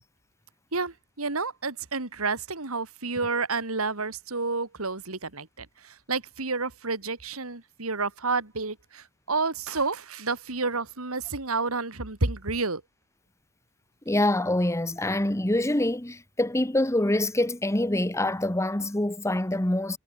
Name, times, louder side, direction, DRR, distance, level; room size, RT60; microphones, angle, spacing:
voice 1, 0.7-12.8, right 3 dB, 85° right, 2.8 m, -30 dB
voice 2, 14.0-20.0, left 1 dB, 15° left, 1.2 m, -25 dB
head